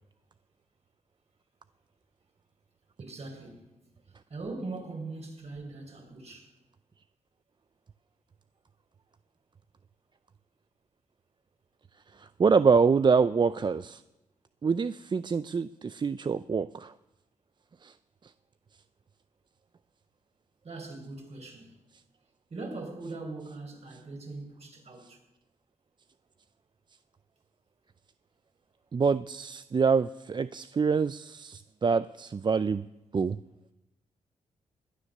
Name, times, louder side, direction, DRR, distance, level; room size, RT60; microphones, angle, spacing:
voice 1, 3.0-3.7 4.3-6.5 20.6-21.8 22.5-25.2, right 3 dB, 50° right, 4.7 m, -41 dB
voice 2, 12.2-14.0 14.6-16.9 17.8-17.9 28.9-32.9 33.1-33.4, right 5 dB, 35° right, 0.4 m, -26 dB
20.5 x 9.8 x 6.6 m
cardioid pair, 70°, 14 cm